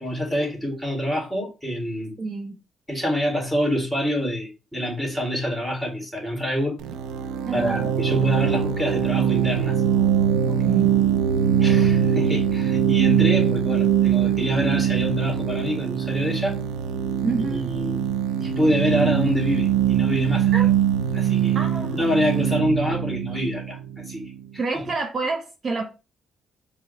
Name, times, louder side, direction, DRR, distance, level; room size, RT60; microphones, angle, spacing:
voice 1, 0.0-2.1 2.9-6.8 7.5-9.8 11.6-16.6 17.4-18.1 18.4-20.5 21.1-24.2 24.7-24.9, equal, ahead, 1.9 m, -26 dB
voice 2, 2.2-2.6 7.5-7.9 10.5-11.0 17.2-17.7 20.5-20.7 21.5-22.1 24.6-25.9, right 3 dB, 45° right, 0.6 m, -28 dB
sound 1, 6.8-24.4, right 9 dB, 90° right, 0.4 m, -22 dB
4.6 x 2.1 x 3.8 m
cardioid pair, 90°, 0 cm